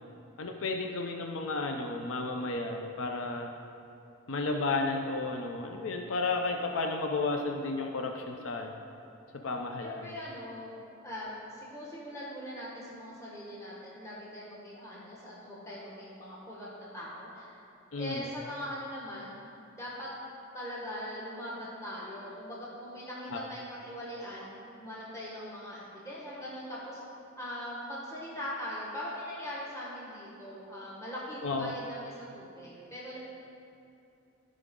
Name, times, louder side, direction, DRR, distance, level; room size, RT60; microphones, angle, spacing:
voice 1, 0.4-3.5 4.3-8.8 9.4-10.2 17.9-18.3 23.3-23.4 31.4-31.7, left 3 dB, 75° left, 3 dB, 0.6 m, -33 dB
voice 2, 9.8-10.7 11.0-17.6 18.0-20.1 20.5-27.0 27.4-33.2, equal, 15° left, -7 dB, 1.5 m, -41 dB
14.5 x 5.1 x 3.8 m, 2.7 s
head